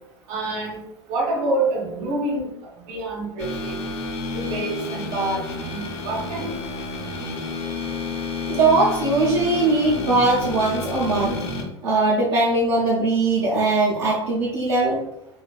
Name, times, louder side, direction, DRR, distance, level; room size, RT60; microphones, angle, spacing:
voice 1, 0.3-0.8 1.1-2.5 2.9-3.8 4.3-5.4 5.7-6.5, right 2 dB, 50° right, -1 dB, 1.0 m, -26 dB
sound 1, 3.4-11.6, left 2 dB, 50° left, 0.7 m, -30 dB
voice 2, 8.5-11.4 11.8-15.0, right 2 dB, 70° right, -5 dB, 0.7 m, -20 dB
3.3 x 2.9 x 2.4 m, 0.85 s
figure-of-eight pair, 80°, 15 cm